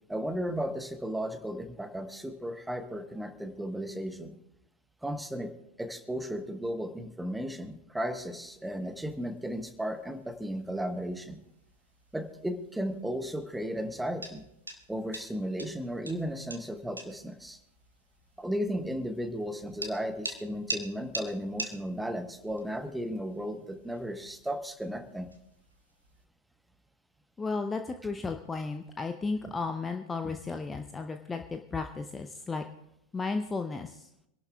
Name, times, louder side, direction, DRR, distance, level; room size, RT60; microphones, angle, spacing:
voice 1, 0.1-4.3 5.0-5.5 5.8-11.4 12.1-14.4 14.9-17.6 18.4-25.3, equal, 5° right, 9 dB, 1.1 m, -35 dB
sound 1, 8.0-26.3, right 2 dB, 80° right, 1.4 m, -46 dB
voice 2, 27.4-32.6 33.1-34.1, left 4 dB, 15° left, 7 dB, 0.6 m, -34 dB
26.5 x 11.5 x 2.3 m, 0.81 s
figure-of-eight pair, 90°, 0 cm